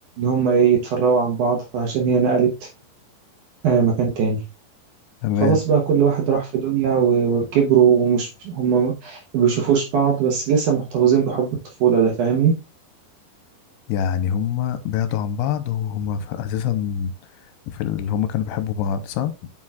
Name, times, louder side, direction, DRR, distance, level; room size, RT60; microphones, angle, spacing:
voice 1, 0.2-2.7 3.6-4.4 5.4-11.5 11.8-12.5, right 7 dB, 65° right, 2.1 m, -19 dB
voice 2, 5.2-5.6 13.9-17.1 17.7-19.3, left 9 dB, 85° left, 2.6 m, -24 dB
7.6 x 6.3 x 2.4 m
omnidirectional pair, 4.8 m